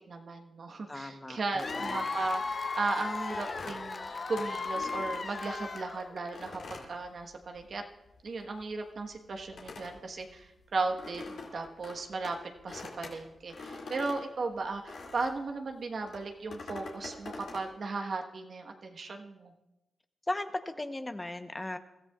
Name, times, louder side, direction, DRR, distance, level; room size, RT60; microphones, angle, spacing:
voice 1, 0.1-7.8 8.2-12.4 12.6-19.5, right 3 dB, 60° right, 3 dB, 1.3 m, -36 dB
voice 2, 0.9-2.1 20.3-21.8, left 1 dB, 20° left, 8 dB, 0.9 m, -37 dB
sound 1, 1.5-5.8 6.3-7.8 8.1-15.5 16.0-17.7, left 3 dB, 75° left, 2.5 m, -45 dB
Cheering / Applause / Crowd, 1.6-6.3, left 4 dB, 50° left, 0.9 m, -36 dB
23.0 x 13.5 x 2.4 m, 0.95 s
cardioid pair, 55°, 0 cm